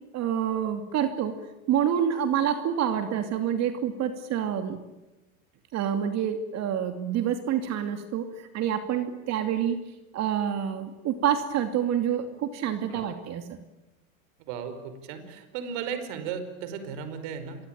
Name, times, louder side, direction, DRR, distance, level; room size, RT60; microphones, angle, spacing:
voice 1, 0.1-1.4 1.7-4.8 5.7-13.6, right 9 dB, 40° right, 8 dB, 2.8 m, -27 dB
voice 2, 14.5-17.6, right 7 dB, 55° right, 9 dB, 5.2 m, -35 dB
28.5 x 23.5 x 9.0 m, 1.0 s
hypercardioid pair, 115°, 43 cm